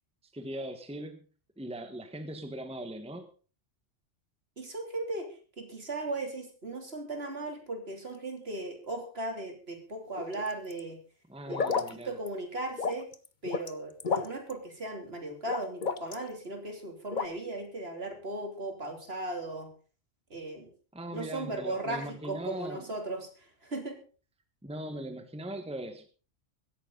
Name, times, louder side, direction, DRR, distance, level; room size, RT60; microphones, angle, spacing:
voice 1, 0.3-1.2 1.6-3.3 11.3-12.1 20.9-22.8 24.6-26.1, right 1 dB, 5° right, 8 dB, 1.4 m, -40 dB
voice 2, 4.6-5.3 5.6-11.0 11.5-13.1 13.4-19.7 20.3-20.7 21.1-24.0, right 2 dB, 55° right, 4 dB, 3.4 m, -37 dB
sound 1, 10.1-10.8 11.5-11.9 12.3-12.4 12.8-13.7 14.0-14.5 15.5-16.3 17.1-17.3, left 5 dB, 40° left, 1.1 m, -31 dB
17.0 x 14.0 x 4.0 m, 0.37 s
omnidirectional pair, 1.3 m